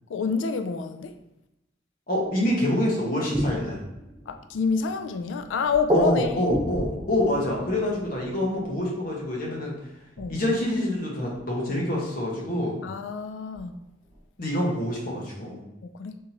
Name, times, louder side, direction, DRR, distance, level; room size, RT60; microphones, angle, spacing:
voice 1, 0.1-1.1 4.3-6.5 7.7-7.8 10.2-10.4 12.8-13.8 15.8-16.2, left 5 dB, 90° left, 9 dB, 0.3 m, -28 dB
voice 2, 2.1-3.8 5.9-9.8 10.3-12.8 14.4-15.6, left 1 dB, 50° left, -3 dB, 1.1 m, -26 dB
sound 1, 2.2-2.8 3.3-9.8 10.2-11.7 13.0-13.1 13.5-14.2, equal, 20° right, 0.7 m, -32 dB
4.0 x 3.6 x 2.9 m, 0.92 s
head